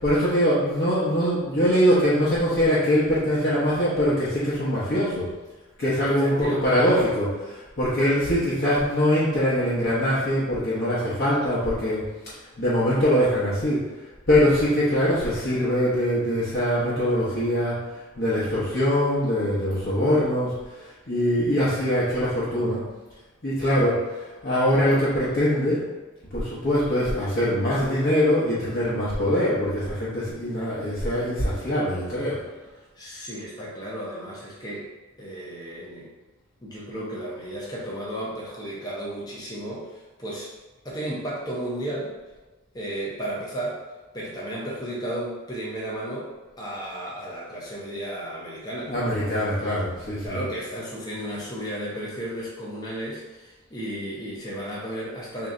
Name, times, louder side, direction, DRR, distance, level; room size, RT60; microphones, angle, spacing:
voice 1, 0.0-5.3 5.8-12.0 12.6-13.8 14.3-17.8 18.2-20.5 20.8-22.8 23.4-25.8 26.3-32.4 48.9-50.4, equal, 45° left, -10 dB, 0.9 m, -23 dB
voice 2, 6.1-7.0 33.0-34.9 35.2-36.1 36.6-40.5 40.8-42.1 42.7-43.8 44.1-46.3 46.6-48.9 50.2-55.5, right 1 dB, 15° left, -5 dB, 0.6 m, -33 dB
3.2 x 2.8 x 3.7 m, 1.2 s
head